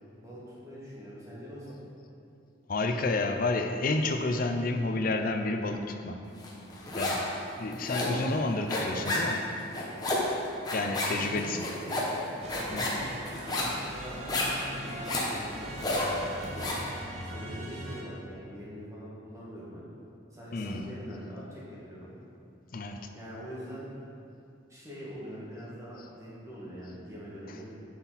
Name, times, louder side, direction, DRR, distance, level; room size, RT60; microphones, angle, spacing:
voice 1, 0.2-1.8 10.7-14.5 14.7-16.3 16.5-16.8 17.3-19.8 20.3-22.1 23.1-23.9 24.7-27.7, equal, 15° right, -8 dB, 1.9 m, -43 dB
voice 2, 2.7-6.2 6.9-7.3 7.6-9.4 10.7-11.7 12.7-13.0 20.5-20.9 22.7-23.0, left 2 dB, 45° left, 5 dB, 0.5 m, -30 dB
sound 1, 6.4-7.3 7.6-16.9, left 1 dB, 20° left, 1.0 m, -31 dB
sound 2, 12.4-18.0, right 1 dB, 30° right, 0.7 m, -41 dB
9.6 x 6.0 x 4.1 m, 2.6 s
head